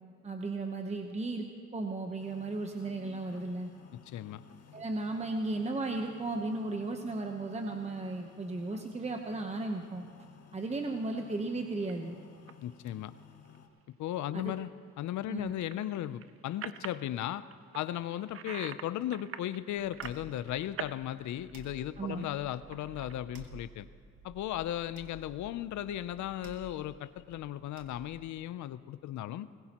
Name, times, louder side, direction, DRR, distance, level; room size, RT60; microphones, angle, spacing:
voice 1, 0.2-1.5 1.7-3.7 4.7-10.1 10.5-12.2 14.3-14.5 15.3-15.5 22.0-22.3, right 2 dB, 20° right, 3 dB, 0.9 m, -35 dB
sound 1, 2.2-13.7, left 8 dB, 55° left, 1.4 m, -56 dB
voice 2, 4.1-4.4 12.6-13.1 14.0-14.7 15.0-17.4 17.7-23.9 24.2-29.5, left 12 dB, 70° left, 15 dB, 0.6 m, -36 dB
sound 2, 11.8-11.9 12.5-12.7 13.2-13.6 15.4-17.1 17.5-18.9 19.1-21.0 21.3-23.1, right 9 dB, 50° right, 0.6 m, -44 dB
sound 3, 19.8-28.3, right 4 dB, 85° right, 1.5 m, -54 dB
21.0 x 16.0 x 3.0 m, 2.2 s
cardioid pair, 90°, 30 cm